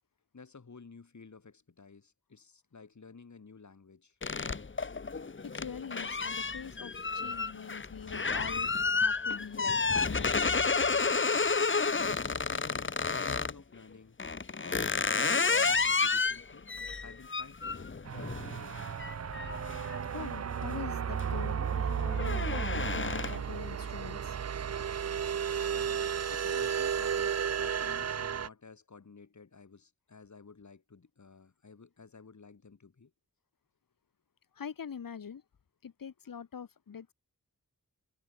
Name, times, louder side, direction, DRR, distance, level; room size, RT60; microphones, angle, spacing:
voice 1, 0.3-4.2 12.3-14.2 14.6-16.7 17.0-18.9 25.7-33.1, left 4 dB, 60° left, 4.7 m, -53 dB
sound 1, 4.2-13.6 14.2-20.6 21.0-21.4 21.7-23.6, left 4 dB, 35° left, 1.2 m, -31 dB
voice 2, 5.4-10.9 20.1-24.4 34.5-35.4 35.8-37.1, left 7 dB, 85° left, 1.5 m, -44 dB
sound 2, 18.1-28.5, right 8 dB, 50° right, 0.6 m, -33 dB
wide cardioid pair, 95°, 33 cm